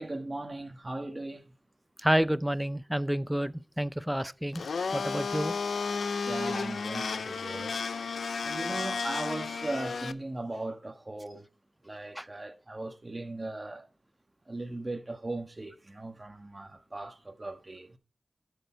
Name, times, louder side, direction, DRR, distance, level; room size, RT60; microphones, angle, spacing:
voice 1, 0.0-1.5 6.3-7.8 8.4-11.4 11.8-13.9 14.5-18.0, right 2 dB, 25° right, 1.5 m, -38 dB
voice 2, 2.0-4.6 4.9-5.5 12.2-12.3, equal, 5° right, 0.5 m, -29 dB
Domestic sounds home sounds, 4.5-10.1, left 5 dB, 80° left, 0.5 m, -33 dB
12.5 x 6.8 x 4.5 m
wide cardioid pair, 110°, 0 cm